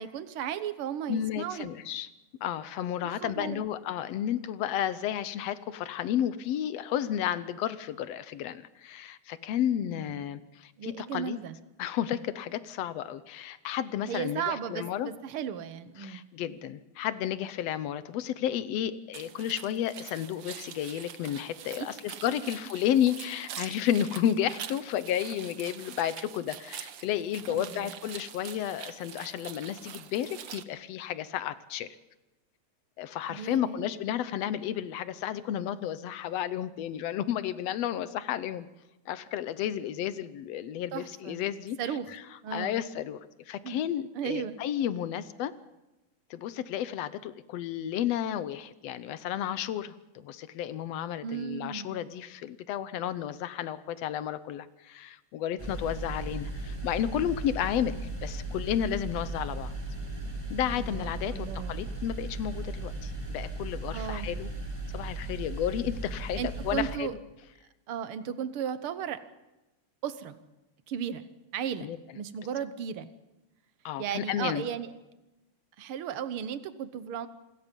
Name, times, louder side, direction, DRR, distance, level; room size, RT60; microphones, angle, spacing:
voice 1, 0.0-1.7 3.0-3.6 9.9-10.3 10.8-11.6 14.1-16.3 27.5-27.9 33.3-33.9 40.9-41.4 41.8-42.1 42.4-42.8 43.6-43.8 44.1-44.6 51.2-52.0 60.7-61.9 63.9-64.3 66.4-67.1 67.9-69.2 70.0-70.4 70.9-71.3 71.5-73.1 74.0-74.9 75.8-77.3, right 8 dB, 60° right, 11 dB, 1.6 m, -35 dB
voice 2, 1.1-2.1 2.4-11.4 11.8-15.1 16.0-31.9 33.0-38.7 39.1-41.8 42.1-42.2 42.5-45.5 46.3-59.7 60.5-64.5 64.9-67.1 71.8-72.0 73.9-74.6, left 10 dB, 70° left, 14 dB, 1.7 m, -32 dB
sound 1, 19.1-30.6, right 9 dB, 75° right, 1.0 m, -44 dB
sound 2, 55.6-66.9, right 2 dB, 10° right, 3.9 m, -37 dB
27.5 x 21.0 x 5.3 m, 1.0 s
omnidirectional pair, 3.4 m